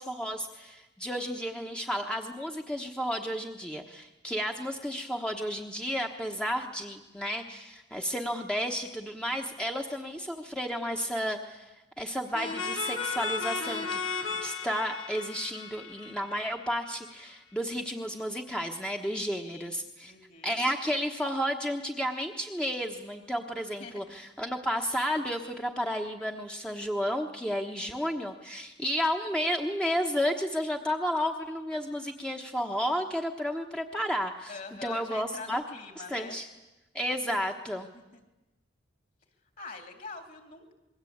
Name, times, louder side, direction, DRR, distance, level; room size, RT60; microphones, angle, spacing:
voice 1, 0.0-11.7 12.0-14.0 14.4-20.1 20.4-34.6 34.8-35.6 36.1-36.5 36.9-37.9, equal, 5° left, 2 dB, 1.2 m, -32 dB
sound 1, 12.3-16.9, left 5 dB, 85° left, 3.0 m, -35 dB
voice 2, 19.0-19.7 20.0-20.6 23.8-24.0 34.5-36.4 37.9-38.2 39.6-40.7, left 4 dB, 45° left, 6 dB, 3.4 m, -44 dB
27.5 x 22.0 x 8.8 m, 1.0 s
head